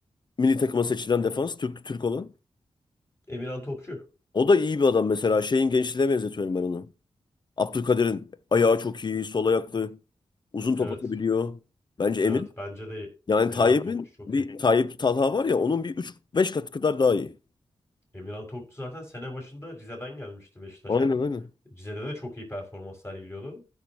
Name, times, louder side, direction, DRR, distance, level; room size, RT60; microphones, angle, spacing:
voice 1, 0.4-2.3 4.4-6.9 7.6-10.0 10.5-11.6 12.0-12.5 13.3-17.3 20.9-21.4, left 4 dB, 45° left, 0.6 m, -24 dB
voice 2, 3.3-4.0 10.7-11.0 12.2-13.1 13.5-14.5 18.1-21.1 21.7-23.6, left 1 dB, 25° left, 5.5 m, -38 dB
15.5 x 6.3 x 2.9 m
cardioid pair, 55°, 11 cm